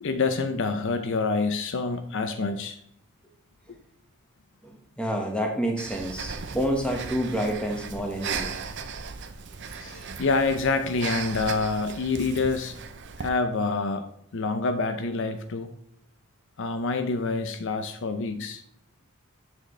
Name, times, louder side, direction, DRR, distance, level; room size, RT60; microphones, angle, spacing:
voice 1, 0.0-2.8 3.7-3.8 9.6-12.7 13.2-15.7 16.6-18.6, left 3 dB, 60° left, 8 dB, 0.6 m, -27 dB
voice 2, 5.0-8.6 9.9-10.0, equal, 5° left, 1 dB, 1.3 m, -28 dB
Breathing, 5.8-13.3, right 5 dB, 55° right, 0.7 m, -37 dB
7.6 x 6.5 x 3.2 m, 0.68 s
head